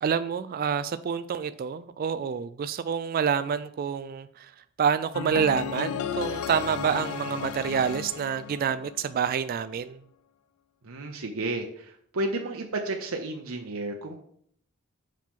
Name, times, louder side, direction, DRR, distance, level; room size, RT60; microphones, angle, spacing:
voice 1, 0.0-4.5 4.8-10.0, right 7 dB, 45° right, 12 dB, 0.3 m, -28 dB
sound 1, 5.1-9.2, left 8 dB, 85° left, 0.4 m, -34 dB
voice 2, 10.8-14.2, right 2 dB, 90° right, 2 dB, 0.8 m, -32 dB
7.5 x 5.8 x 3.7 m, 0.65 s
head